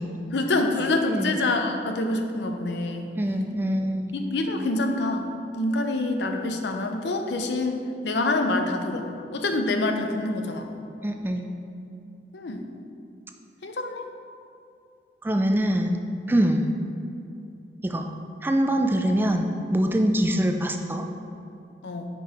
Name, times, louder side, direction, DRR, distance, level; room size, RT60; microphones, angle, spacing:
voice 1, 0.3-3.2 4.1-5.3 5.5-7.8 8.0-9.1 9.3-10.7 12.3-12.6 13.6-14.1 21.8-22.1, left 2 dB, 75° left, 5 dB, 0.6 m, -26 dB
voice 2, 1.1-1.4 3.2-4.1 11.0-11.5 15.2-16.0 16.3-16.7 17.8-18.1 18.4-21.0, right 1 dB, 10° right, 4 dB, 0.3 m, -24 dB
5.2 x 4.6 x 4.9 m, 2.7 s
head